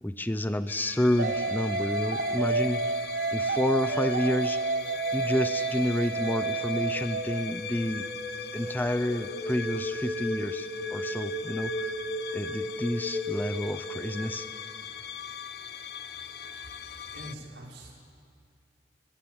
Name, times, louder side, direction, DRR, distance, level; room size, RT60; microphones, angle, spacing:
voice 1, 0.0-2.8 3.3-4.6 5.1-8.1 8.5-11.9 12.3-14.5, left 1 dB, 10° left, 11 dB, 0.7 m, -29 dB
sound 1, 0.7-17.4, left 7 dB, 60° left, 1.0 m, -41 dB
sound 2, 1.2-7.5, right 3 dB, 55° right, 0.8 m, -30 dB
sound 3, 4.6-14.3, equal, 10° right, 4.3 m, -37 dB
voice 2, 16.7-18.0, equal, 80° right, -2 dB, 6.0 m, -45 dB
28.5 x 20.5 x 9.7 m, 2.3 s
head